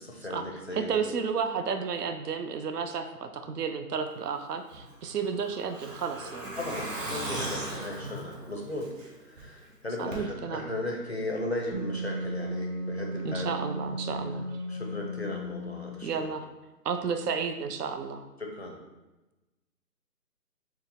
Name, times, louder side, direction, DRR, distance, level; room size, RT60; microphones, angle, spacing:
voice 1, 0.0-1.0 6.6-8.9 9.2-13.6 14.7-16.3 18.4-18.8, left 1 dB, 45° left, 0 dB, 0.4 m, -36 dB
voice 2, 0.7-6.6 10.0-10.7 13.2-14.5 16.0-16.5 16.8-18.2, right 6 dB, 70° right, 7 dB, 0.5 m, -32 dB
Truck, 4.7-9.4 9.7-9.8 10.1-10.2, right 1 dB, 55° right, 1.0 m, -38 dB
Wind instrument woodwind instrument, 11.7-16.1, equal, 90° right, 1.0 m, -35 dB
4.4 x 2.1 x 3.5 m, 1.1 s
hypercardioid pair, 165°, 49 cm